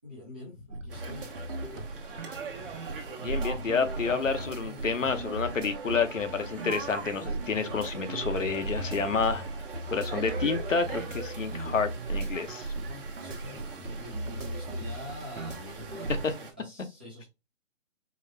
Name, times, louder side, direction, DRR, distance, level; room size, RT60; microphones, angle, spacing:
voice 1, 0.0-1.3 1.6-1.9 13.2-17.2, left 1 dB, 10° right, 0.5 m, -45 dB
sound 1, 0.7-16.3, right 2 dB, 80° right, 1.1 m, -37 dB
sound 2, 0.9-16.5, right 5 dB, 45° right, 1.1 m, -43 dB
voice 2, 3.2-9.4 9.9-12.7 16.2-16.3, left 5 dB, 80° left, 0.9 m, -29 dB
4.7 x 2.2 x 3.2 m
figure-of-eight pair, 140°, 38 cm